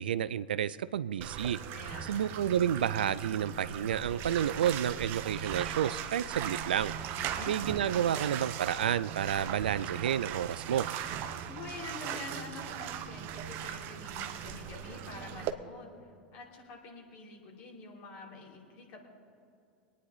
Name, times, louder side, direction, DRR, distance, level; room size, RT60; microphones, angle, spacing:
voice 1, 0.0-1.6 2.1-6.9 7.5-10.9, right 9 dB, 75° right, 17 dB, 0.4 m, -30 dB
Bathtub (filling or washing), 1.2-15.5, right 9 dB, 50° right, 0.9 m, -39 dB
voice 2, 1.7-2.3 7.2-7.5 11.5-15.9 16.3-19.1, left 3 dB, 55° left, -1 dB, 3.4 m, -47 dB
24.0 x 9.5 x 4.1 m, 2.5 s
figure-of-eight pair, 85°, 5 cm